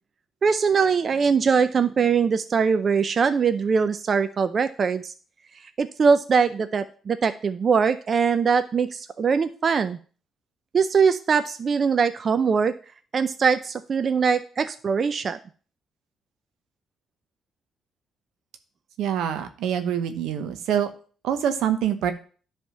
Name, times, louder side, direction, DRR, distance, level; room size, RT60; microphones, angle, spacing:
voice 1, 0.4-5.1 5.8-10.0 10.7-12.7 13.1-15.4, right 5 dB, 45° right, 10 dB, 0.5 m, -22 dB
voice 2, 19.0-20.9 21.2-22.1, right 9 dB, 85° right, 8 dB, 0.9 m, -25 dB
10.5 x 3.5 x 5.6 m, 0.40 s
cardioid pair, 90°, 0 cm